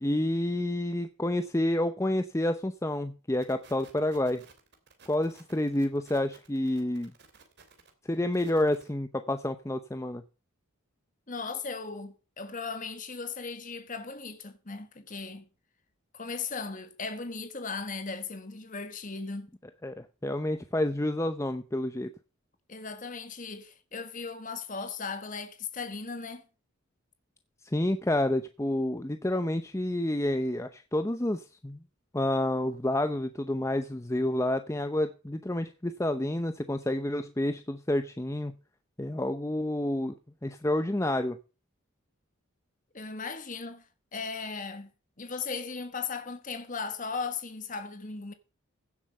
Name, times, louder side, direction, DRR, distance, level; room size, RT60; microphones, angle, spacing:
voice 1, 0.0-4.4 5.1-7.1 8.0-10.2 19.8-22.1 27.6-31.8 32.1-38.5 39.0-40.1 40.4-41.4, left 1 dB, 15° left, 0.6 m, -29 dB
sound 1, 3.4-8.9, right 5 dB, 50° right, 3.0 m, -56 dB
voice 2, 11.3-15.5 16.1-19.5 22.7-26.4 42.9-44.9 45.2-48.3, left 4 dB, 40° left, 1.5 m, -37 dB
16.0 x 7.4 x 5.5 m
head